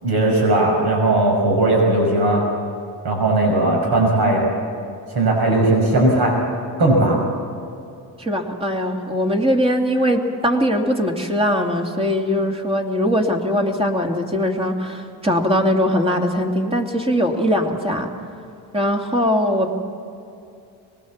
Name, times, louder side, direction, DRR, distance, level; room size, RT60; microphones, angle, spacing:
voice 1, 0.0-2.4 3.0-4.5 5.1-6.4 6.8-7.2, right 2 dB, 65° right, 0 dB, 5.9 m, -17 dB
voice 2, 8.2-18.1 18.7-19.7, equal, 15° right, 2 dB, 2.6 m, -21 dB
24.0 x 21.5 x 7.3 m, 2.5 s
cardioid pair, 120°, 42 cm